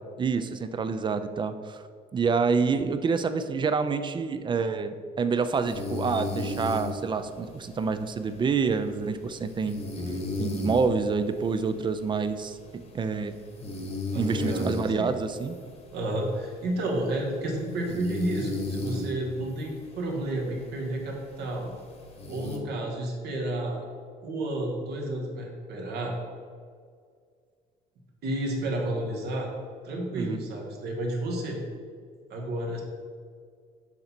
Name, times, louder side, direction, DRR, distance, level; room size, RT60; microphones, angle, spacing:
voice 1, 0.2-1.8 2.1-9.8 10.4-13.3 14.2-15.6 30.1-30.4, right 5 dB, 30° right, 10 dB, 0.4 m, -27 dB
sound 1, 5.4-22.6, left 2 dB, 40° left, 1.0 m, -36 dB
voice 2, 14.1-15.1 15.9-21.7 22.3-23.8 24.2-26.1 28.2-29.5 29.8-31.6 32.3-32.8, right 1 dB, 75° right, 0 dB, 1.4 m, -31 dB
6.6 x 4.1 x 4.3 m, 2.1 s
cardioid pair, 110°, 17 cm